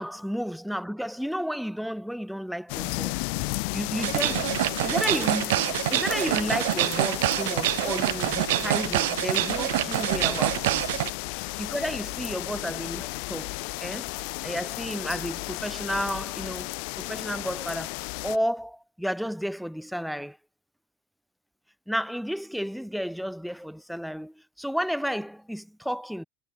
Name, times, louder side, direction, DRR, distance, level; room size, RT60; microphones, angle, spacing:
voice 1, 0.0-3.2 3.7-4.4 4.8-10.9 11.6-14.1 14.4-16.7 17.0-18.0 18.2-20.4 21.9-26.2, equal, ahead, 0.9 m, -32 dB
sound 1, 2.7-18.4, left 40 dB or more, 60° left, 3.6 m, -34 dB
sound 2, 4.0-11.1, right 18 dB, 85° right, 0.4 m, -26 dB
supercardioid pair, 160°, 0 cm